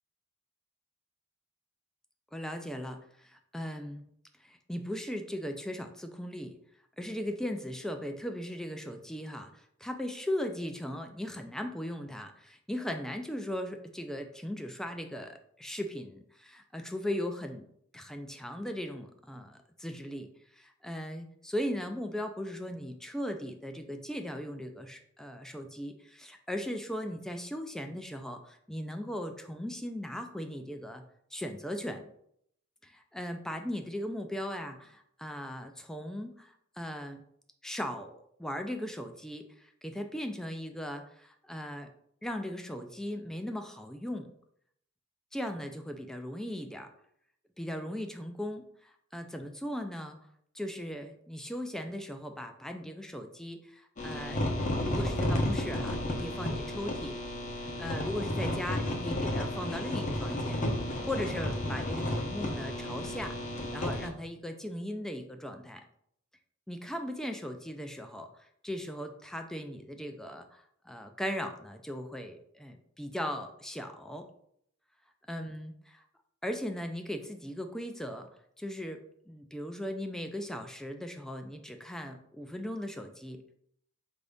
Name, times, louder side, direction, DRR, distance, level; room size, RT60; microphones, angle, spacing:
voice 1, 2.3-4.0 4.4-6.5 7.0-17.6 17.9-20.3 20.5-31.0 31.3-32.1 32.8-37.2 37.6-41.9 42.2-44.3 45.3-46.9 47.6-50.2 50.5-54.4 54.7-57.2 57.8-60.6 61.0-63.4 63.7-65.8 66.7-74.3 75.3-76.0 76.4-78.3 78.6-83.4, equal, 5° left, 5 dB, 0.3 m, -38 dB
sound 1, 54.0-64.1, left 1 dB, 40° left, 0.7 m, -32 dB
4.6 x 2.6 x 3.4 m, 0.70 s
head